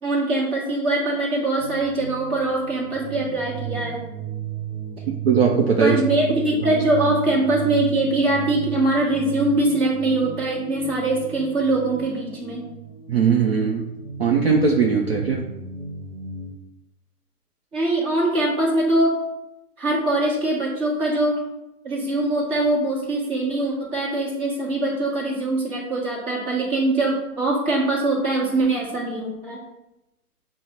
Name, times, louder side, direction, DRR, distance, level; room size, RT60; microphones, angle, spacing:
voice 1, 0.0-4.0 5.8-12.6 17.7-19.2 19.8-21.4 21.8-29.6, right 2 dB, 10° right, -5 dB, 0.9 m, -22 dB
sound 1, 1.6-16.5, right 7 dB, 90° right, 0.8 m, -34 dB
voice 2, 5.1-6.0 13.1-13.9 14.2-15.5, right 5 dB, 45° right, -1 dB, 0.5 m, -19 dB
6.1 x 2.1 x 4.2 m, 0.91 s
figure-of-eight pair, 125°, 46 cm